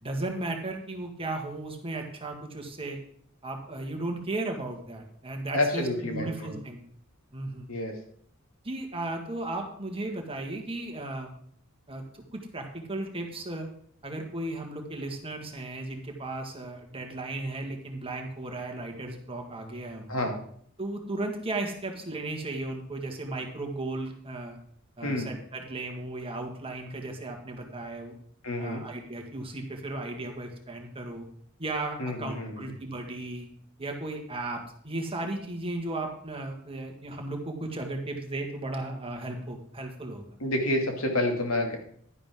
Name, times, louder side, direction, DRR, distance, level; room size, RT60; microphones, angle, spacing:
voice 1, 0.0-3.0 3.4-6.8 7.3-7.7 8.6-11.3 11.9-13.7 14.0-20.3 20.8-24.6 25.0-28.2 28.6-31.3 31.6-33.5 33.8-40.2, right 2 dB, 25° right, 3 dB, 1.9 m, -35 dB
voice 2, 5.5-6.5 7.7-7.9 20.1-20.4 25.0-25.3 28.4-28.8 32.0-32.7 40.4-41.8, left 1 dB, 75° left, 2 dB, 2.5 m, -29 dB
11.0 x 10.5 x 3.8 m, 0.62 s
head